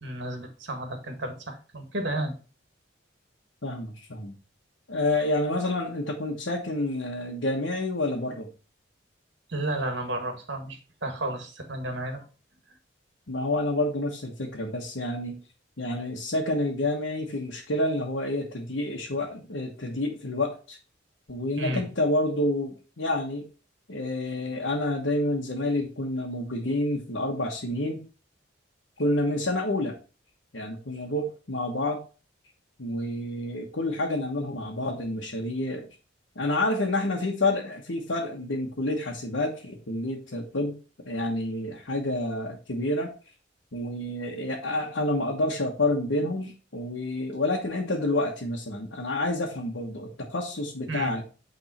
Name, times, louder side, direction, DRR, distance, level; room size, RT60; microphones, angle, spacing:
voice 1, 0.0-2.4 9.5-12.2 21.6-21.8 50.9-51.2, right 1 dB, 70° right, 5 dB, 1.7 m, -32 dB
voice 2, 3.6-4.4 4.9-8.5 13.3-15.4 15.8-20.8 21.3-23.4 23.9-28.0 29.0-30.0 30.5-32.0 32.8-35.9 36.3-40.7 41.0-43.1 43.7-51.2, left 1 dB, 85° left, -2 dB, 1.3 m, -28 dB
8.9 x 3.6 x 4.3 m, 0.35 s
head